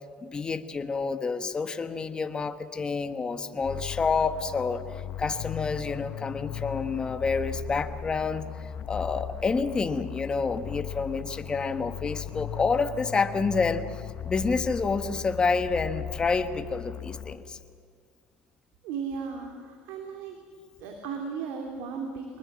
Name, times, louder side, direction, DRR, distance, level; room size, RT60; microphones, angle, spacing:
voice 1, 0.2-4.8 5.2-8.4 8.9-13.8 14.2-17.6, left 4 dB, 25° left, 9 dB, 1.4 m, -28 dB
sound 1, 3.6-17.7, left 10 dB, 45° left, 1.0 m, -38 dB
voice 2, 18.8-20.4 20.8-22.4, right 5 dB, 80° right, 3 dB, 2.9 m, -36 dB
24.0 x 20.5 x 7.5 m, 2.1 s
cardioid pair, 120°, 4 cm